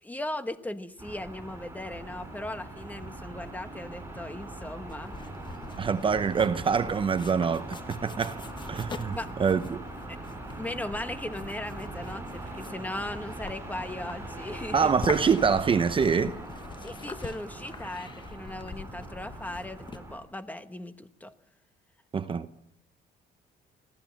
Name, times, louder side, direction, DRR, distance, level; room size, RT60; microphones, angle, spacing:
voice 1, 0.0-5.2 9.1-9.3 10.1-10.2 10.5-14.9 16.8-21.3, left 1 dB, 10° left, 1.3 m, -38 dB
sound 1, 1.0-20.2, right 2 dB, 15° right, 6.8 m, -41 dB
sound 2, 4.9-20.0, left 4 dB, 25° left, 1.3 m, -44 dB
voice 2, 5.8-9.8 14.7-16.3 22.1-22.5, right 6 dB, 30° right, 0.8 m, -25 dB
22.5 x 15.5 x 7.5 m
cardioid pair, 110°, 17 cm